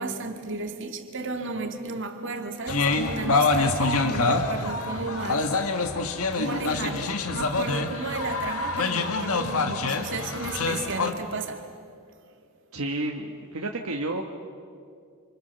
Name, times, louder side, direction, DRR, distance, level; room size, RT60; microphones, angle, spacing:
voice 1, 0.0-5.6 6.0-6.1 6.4-11.7, right 3 dB, 60° right, 2.2 m, -33 dB
sound 1, 2.7-11.1, left 3 dB, 85° left, 1.8 m, -26 dB
voice 2, 12.7-14.2, right 2 dB, 80° right, 1.4 m, -30 dB
28.0 x 27.0 x 6.9 m
head